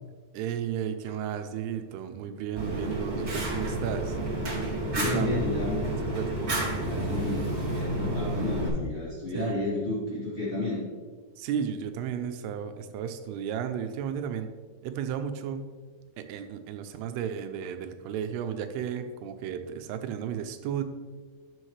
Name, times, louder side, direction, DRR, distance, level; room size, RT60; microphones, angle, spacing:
voice 1, 0.3-4.2 4.9-5.4 6.0-6.5 9.3-9.5 11.4-14.5 14.8-15.7 16.2-20.8, right 8 dB, 85° right, 8 dB, 2.6 m, -34 dB
Fire, 2.6-8.7, right 1 dB, 30° right, 1.2 m, -30 dB
voice 2, 4.9-5.9 6.7-10.8, left 2 dB, 20° left, -9 dB, 2.5 m, -31 dB
12.0 x 6.4 x 3.2 m, 1.5 s
omnidirectional pair, 4.6 m